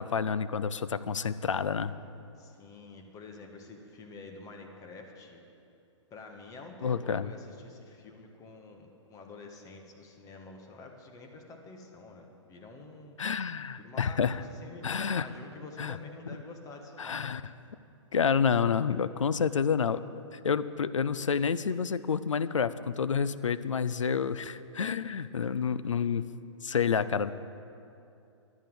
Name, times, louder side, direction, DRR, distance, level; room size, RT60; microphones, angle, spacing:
voice 1, 0.0-1.9 6.8-7.3 13.2-14.4 14.8-15.3 15.8-16.0 17.0-17.4 18.1-20.0 20.3-26.3 26.6-27.3, left 6 dB, 80° left, 14 dB, 0.5 m, -29 dB
voice 2, 2.4-5.4 6.1-13.2 13.8-17.3, left 3 dB, 20° left, 2 dB, 1.5 m, -48 dB
11.0 x 9.2 x 7.7 m, 2.6 s
figure-of-eight pair, 120°, 16 cm